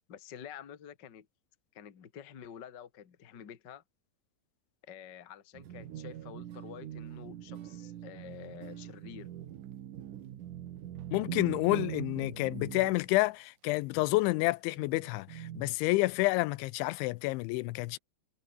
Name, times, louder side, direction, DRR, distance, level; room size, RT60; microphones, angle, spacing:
voice 1, 0.1-1.3 1.7-3.8 4.8-9.3, left 9 dB, 60° left, 1.1 m, -48 dB
sound 1, 5.5-13.2 14.2-14.3 14.7-15.8, right 11 dB, 60° right, 2.5 m, -43 dB
voice 2, 11.1-18.0, left 21 dB, 90° left, 3.1 m, -29 dB
omnidirectional pair, 5.3 m